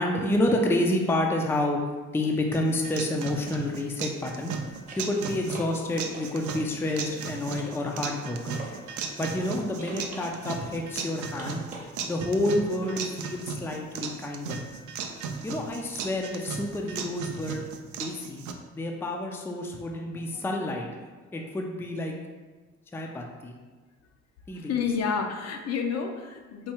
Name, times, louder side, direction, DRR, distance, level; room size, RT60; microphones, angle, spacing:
voice 1, 0.0-1.8 2.1-4.5 5.0-8.6 9.2-11.6 12.1-14.6 15.4-17.6 17.9-18.4 18.7-22.2 22.9-23.5 24.5-24.8, left 1 dB, 10° left, 1 dB, 0.4 m, -29 dB
sound 1, 1.7-1.8 4.1-9.1 9.4-13.1 15.8-15.9, right 2 dB, 25° right, 0.8 m, -47 dB
sound 2, 2.5-18.5, right 5 dB, 75° right, 0.4 m, -36 dB
voice 2, 24.5-26.7, left 6 dB, 60° left, 4 dB, 0.5 m, -29 dB
4.4 x 2.3 x 2.9 m, 1.3 s
cardioid pair, 90°, 30 cm